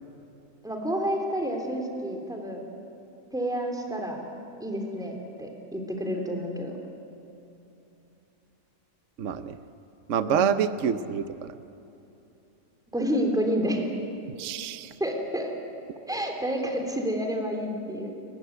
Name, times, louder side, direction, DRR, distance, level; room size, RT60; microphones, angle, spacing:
voice 1, 0.6-2.6 3.3-4.2 4.6-6.7 10.3-10.5 12.9-13.8 15.0-15.5 16.1-18.2, equal, ahead, 2 dB, 3.1 m, -29 dB
voice 2, 9.2-9.6 10.1-11.5 14.4-14.9, right 8 dB, 55° right, 11 dB, 1.0 m, -27 dB
30.0 x 15.0 x 9.4 m, 2.9 s
omnidirectional pair, 1.7 m